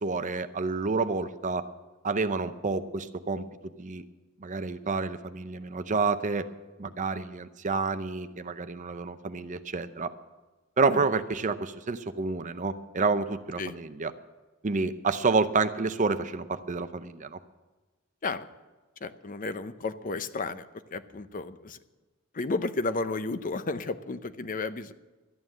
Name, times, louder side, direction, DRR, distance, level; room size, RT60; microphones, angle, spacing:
voice 1, 0.0-1.6 2.0-4.0 4.4-6.5 6.8-10.1 10.8-14.1 14.6-17.4, right 4 dB, 35° right, 11 dB, 0.6 m, -29 dB
voice 2, 19.0-21.8 22.3-24.9, left 3 dB, 40° left, 12 dB, 0.6 m, -33 dB
12.5 x 9.6 x 7.7 m, 1.2 s
head